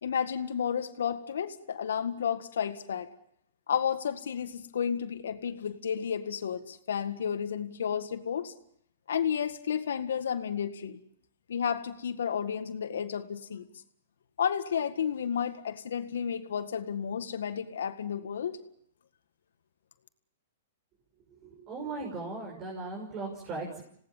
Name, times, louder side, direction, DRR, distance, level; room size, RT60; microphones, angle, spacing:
voice 1, 0.0-3.1 3.7-8.5 9.1-11.0 11.5-13.6 14.4-18.6, left 7 dB, 80° left, 10 dB, 1.8 m, -32 dB
voice 2, 21.4-23.8, right 3 dB, 35° right, -1 dB, 6.1 m, -38 dB
27.0 x 18.0 x 7.3 m, 0.69 s
hypercardioid pair, 130°, 0 cm